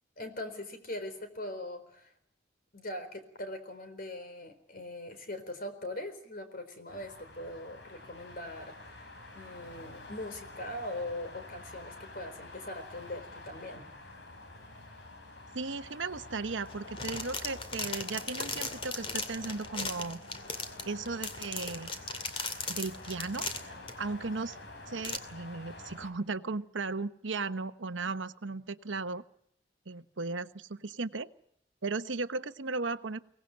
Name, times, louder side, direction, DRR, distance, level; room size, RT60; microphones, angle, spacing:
voice 1, 0.2-2.1 2.7-9.1 9.3-13.9, left 1 dB, 50° left, 8 dB, 4.1 m, -41 dB
sound 1, 6.9-26.1, left 2 dB, 70° left, 4.4 m, -48 dB
voice 2, 15.5-20.2 20.8-21.9 22.7-24.6 24.9-29.2 29.9-31.3 31.8-33.2, right 3 dB, 85° right, 11 dB, 1.0 m, -36 dB
sound 2, 16.7-23.9 24.5-24.6 25.0-25.2, left 4 dB, 30° left, 2.4 m, -37 dB
23.5 x 18.0 x 8.9 m, 0.69 s
head